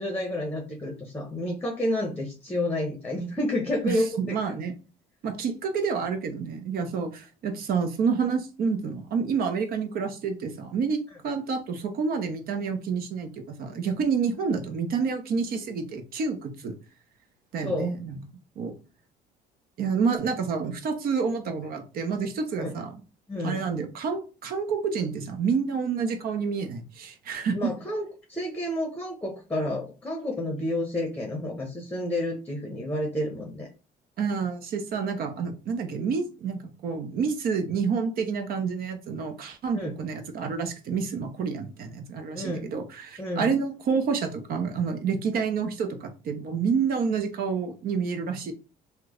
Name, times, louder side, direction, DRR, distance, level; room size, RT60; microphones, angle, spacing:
voice 1, 0.0-4.4 17.6-17.9 22.6-22.7 23.3-23.6 27.5-33.7 39.7-39.9 42.3-42.6 43.2-43.5, left 1 dB, 10° left, 0.8 m, -30 dB
voice 2, 3.8-4.7 5.2-16.8 17.5-18.1 18.6-18.7 19.8-23.0 23.4-27.7 34.2-48.5, right 5 dB, 60° right, 0.8 m, -28 dB
3.0 x 2.2 x 3.7 m
cardioid pair, 110°, 17 cm